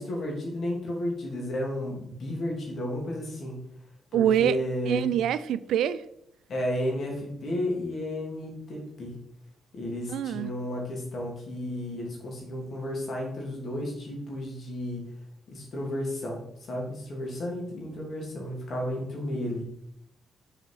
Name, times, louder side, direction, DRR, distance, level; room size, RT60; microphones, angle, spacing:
voice 1, 0.0-3.5 4.1-5.1 6.5-9.1 9.7-15.0 15.5-16.4 16.7-19.6, left 1 dB, 55° left, -1 dB, 2.8 m, -32 dB
voice 2, 4.1-4.6 4.9-6.0 10.1-10.5, right 10 dB, 75° right, 16 dB, 0.4 m, -25 dB
6.5 x 5.0 x 4.7 m, 0.75 s
hypercardioid pair, 45°, 0 cm